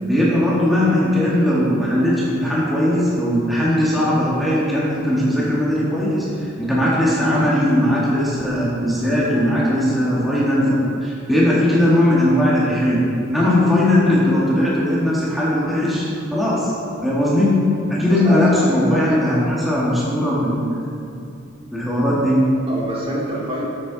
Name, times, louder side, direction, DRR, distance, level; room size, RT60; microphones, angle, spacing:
voice 1, 0.0-13.0 13.3-16.7 17.0-17.6 17.9-20.9 21.7-22.5, left 1 dB, ahead, -8 dB, 1.8 m, -18 dB
voice 2, 18.1-19.2 22.7-23.6, equal, 30° right, -6 dB, 2.3 m, -27 dB
13.0 x 7.6 x 4.0 m, 2.6 s
head